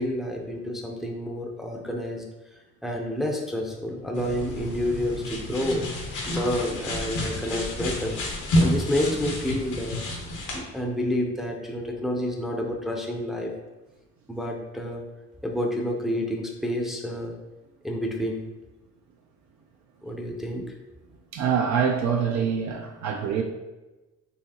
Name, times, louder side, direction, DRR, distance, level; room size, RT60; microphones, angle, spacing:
voice 1, 0.0-2.2 2.8-8.2 8.6-10.0 10.5-13.5 14.3-15.0 15.4-17.3 17.8-18.4 20.0-20.6, left 1 dB, ahead, 0 dB, 0.5 m, -29 dB
sound 1, 4.1-10.6, left 1 dB, 75° left, 1.0 m, -29 dB
voice 2, 21.3-23.4, right 7 dB, 65° right, 2 dB, 0.5 m, -25 dB
4.1 x 2.8 x 2.8 m, 1.1 s
cardioid pair, 90°, 30 cm